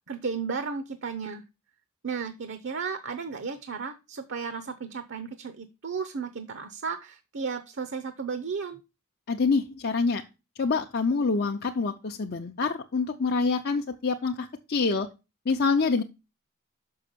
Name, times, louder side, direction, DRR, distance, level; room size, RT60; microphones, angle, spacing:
voice 1, 0.1-1.4 2.0-8.8, right 5 dB, 55° right, 10 dB, 0.7 m, -34 dB
voice 2, 9.3-10.2 10.6-15.1 15.5-16.0, left 4 dB, 45° left, 3 dB, 0.6 m, -26 dB
6.2 x 5.6 x 6.7 m, 0.28 s
head